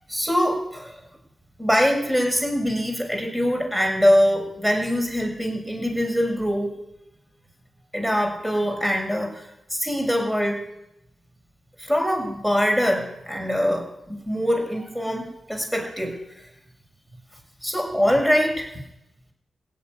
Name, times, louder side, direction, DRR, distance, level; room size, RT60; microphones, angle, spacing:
voice 1, 0.1-1.0 1.6-6.7 7.9-10.6 11.8-16.4 17.6-18.7, equal, 5° right, 2 dB, 6.7 m, -23 dB
16.5 x 8.3 x 9.9 m, 0.85 s
cardioid pair, 55°, 0 cm